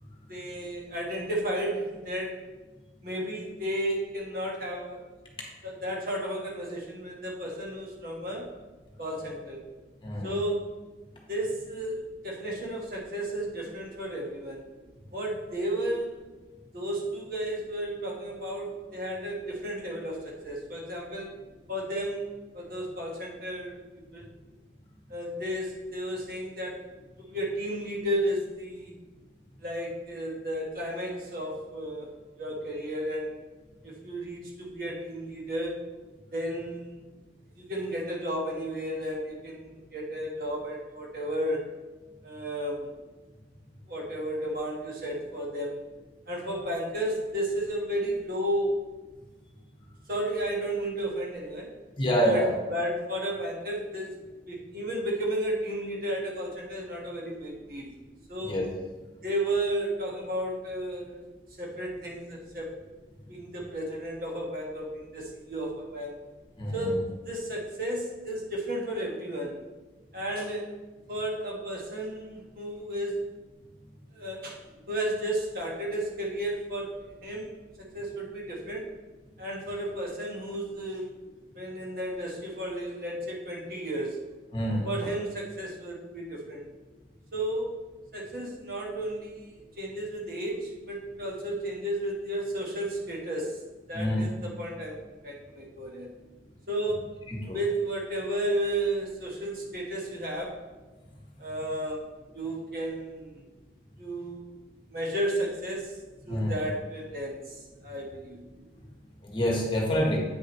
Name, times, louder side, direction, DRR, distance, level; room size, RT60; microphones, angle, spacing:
voice 1, 0.3-2.4 3.0-5.0 5.6-8.5 9.0-9.6 10.2-10.7 11.3-14.6 15.1-16.3 16.7-21.4 21.7-22.3 22.5-24.3 25.1-26.8 27.2-28.9 29.6-32.1 32.4-33.4 33.8-35.8 36.3-37.0 37.5-41.8 42.2-42.9 43.9-45.8 46.3-48.8 50.1-51.7 52.2-54.1 54.5-58.0 58.3-58.6 59.2-61.2 61.6-62.8 63.3-66.1 66.7-69.6 70.1-70.7 71.1-73.3 74.1-74.6 74.9-77.5 77.8-78.9 79.4-81.1 81.5-84.2 84.8-86.6 87.3-87.8 88.1-89.5 89.8-93.6 93.9-96.1 96.7-97.1 97.4-100.6 101.4-102.1 102.3-103.4 104.0-104.5 104.9-106.0 106.3-108.4, right 1 dB, 55° right, -2 dB, 1.4 m, -33 dB
voice 2, 52.0-52.5 58.4-58.7 66.6-66.9 84.5-84.9 93.9-94.3 97.3-97.6 106.3-106.5 109.2-110.2, equal, 25° left, -1 dB, 1.2 m, -27 dB
8.6 x 6.4 x 3.1 m, 1.2 s
head